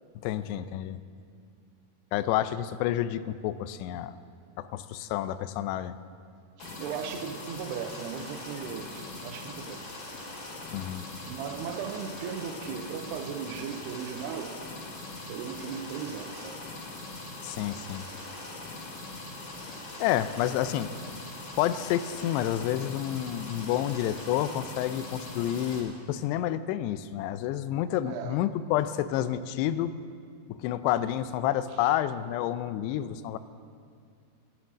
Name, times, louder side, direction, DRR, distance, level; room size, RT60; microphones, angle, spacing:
voice 1, 0.2-1.0 2.1-4.2 4.6-6.0 10.7-11.0 17.4-18.1 20.0-20.9 21.6-29.9 30.5-33.4, left 12 dB, 90° left, 14 dB, 2.7 m, -29 dB
sound 1, 6.6-25.8, left 2 dB, 60° left, 3.7 m, -41 dB
voice 2, 6.6-10.0 11.2-14.6 15.2-16.6 28.0-28.4 31.7-31.9, right 7 dB, 85° right, 7 dB, 2.9 m, -37 dB
13.0 x 13.0 x 6.2 m, 2.3 s
omnidirectional pair, 4.8 m